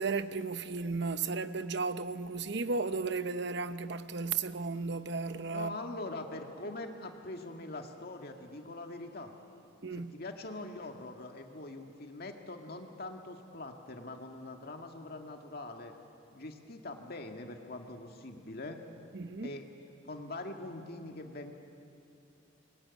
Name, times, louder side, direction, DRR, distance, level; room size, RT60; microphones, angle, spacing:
voice 1, 0.0-5.8 9.8-10.1 19.1-19.5, right 4 dB, 60° right, 1.0 m, -34 dB
voice 2, 5.5-9.3 10.1-15.9 16.3-18.8 19.4-19.6 20.0-21.5, left 2 dB, 50° left, 2.0 m, -43 dB
27.0 x 21.5 x 9.8 m
head